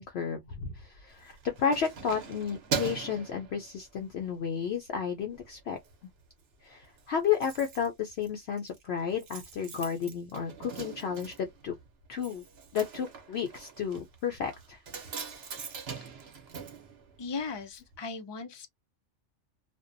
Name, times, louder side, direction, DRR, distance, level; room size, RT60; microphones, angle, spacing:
voice 1, 0.0-5.8 6.6-11.7 12.1-12.4 12.7-14.8, left 7 dB, 65° left, 0.7 m, -32 dB
Keys jangling, 1.1-4.2 4.6-4.9 5.2-5.9 6.2-6.3 6.5-6.6 6.8-17.6 17.9-18.0, right 6 dB, 60° right, 0.9 m, -41 dB
voice 2, 17.2-18.7, left 4 dB, 45° left, 0.3 m, -37 dB
2.5 x 2.2 x 2.5 m
omnidirectional pair, 1.3 m